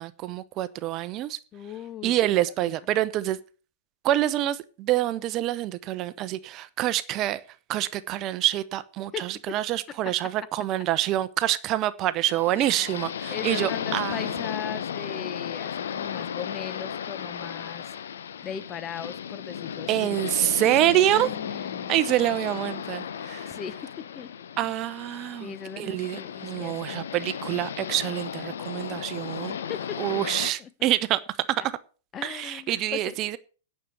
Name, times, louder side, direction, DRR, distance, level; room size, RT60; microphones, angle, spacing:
voice 1, 0.0-1.4 2.0-3.4 4.0-7.4 7.7-14.3 19.9-21.3 21.9-23.5 24.6-29.6 30.0-31.2 31.5-31.6 32.2-33.4, right 14 dB, 35° right, 0.8 m, -26 dB
voice 2, 1.5-2.2 2.4-2.8 9.1-9.6 9.9-10.0 13.3-17.8 18.4-20.3 21.1-22.0 23.4-24.3 24.6-24.7 25.4-27.1 29.7-30.9 32.1-33.2, left 9 dB, 25° left, 0.9 m, -38 dB
sound 1, 12.3-30.5, left 8 dB, 65° left, 0.9 m, -35 dB
9.9 x 6.7 x 8.0 m
figure-of-eight pair, 105°, 0 cm